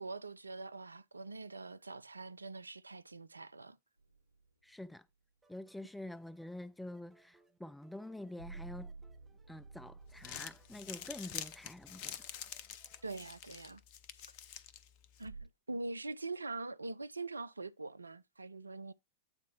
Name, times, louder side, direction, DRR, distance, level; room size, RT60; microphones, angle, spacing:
voice 1, 0.0-3.8 13.0-13.8 15.2-18.9, right 3 dB, 80° right, 0.3 m, -43 dB
sound 1, 4.0-4.5 8.4-11.8 15.2-15.4, right 4 dB, 90° left, 1.7 m, -52 dB
voice 2, 4.6-5.1 5.5-8.9 9.5-12.3, left 1 dB, 5° left, 0.3 m, -47 dB
sound 2, 5.4-13.1, right 3 dB, 10° right, 1.2 m, -70 dB
Crumpling crinkling, 10.0-15.3, left 9 dB, 45° left, 0.7 m, -47 dB
8.9 x 4.2 x 4.5 m
figure-of-eight pair, 90°, 0 cm